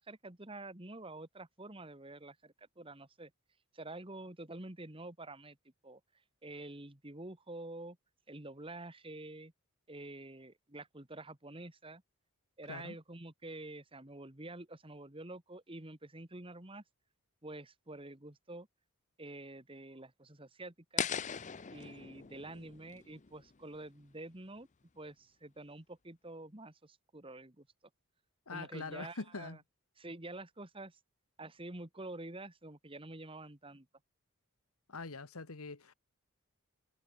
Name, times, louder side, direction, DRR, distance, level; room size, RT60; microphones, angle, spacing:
voice 1, 0.0-3.3 3.7-5.6 5.8-6.0 6.4-8.0 8.3-9.5 9.9-12.0 12.6-16.8 17.4-18.7 19.2-21.1 21.7-24.7 25.0-27.7 28.5-29.6 30.0-31.0 31.4-33.9, right 2 dB, 25° right, 1.8 m, -48 dB
sound 1, 21.0-24.0, left 7 dB, 35° left, 0.6 m, -40 dB
voice 2, 28.5-29.6 34.9-35.9, left 3 dB, 80° left, 1.4 m, -43 dB
head